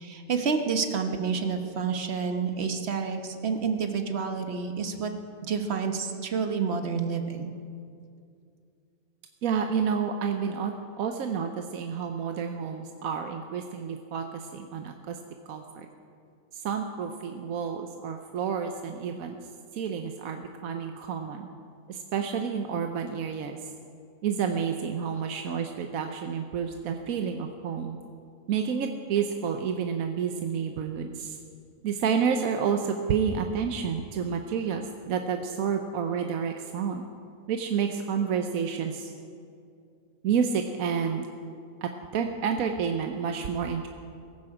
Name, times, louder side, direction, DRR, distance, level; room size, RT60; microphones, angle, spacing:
voice 1, 0.0-5.1 5.4-7.5, right 5 dB, 50° right, 6 dB, 1.3 m, -29 dB
voice 2, 9.4-15.2 15.5-15.9 16.5-19.4 19.7-21.5 21.9-23.6 24.2-28.0 28.5-31.4 31.8-37.0 37.5-39.1 40.2-41.3 41.8-43.9, right 7 dB, 80° right, 5 dB, 1.2 m, -29 dB
17.0 x 15.0 x 4.9 m, 2.4 s
omnidirectional pair, 1.4 m